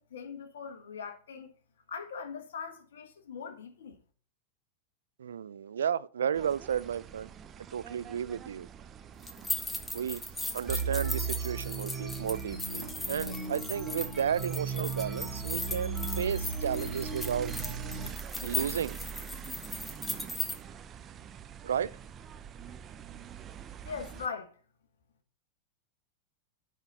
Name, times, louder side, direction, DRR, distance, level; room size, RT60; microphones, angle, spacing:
voice 1, 0.1-1.5 1.9-4.0 23.8-24.5, left 6 dB, 70° left, 1.3 m, -40 dB
voice 2, 5.2-7.3 7.7-8.7 9.9-10.2 10.5-17.5 18.4-19.0 21.6-21.9, right 8 dB, 75° right, 0.3 m, -33 dB
sound 1, 6.3-24.3, right 8 dB, 30° right, 0.7 m, -46 dB
sound 2, 9.2-20.5, left 2 dB, 10° left, 1.2 m, -38 dB
sound 3, 10.7-18.1, right 4 dB, 5° right, 2.0 m, -36 dB
9.0 x 4.0 x 5.5 m
figure-of-eight pair, 95°, 0 cm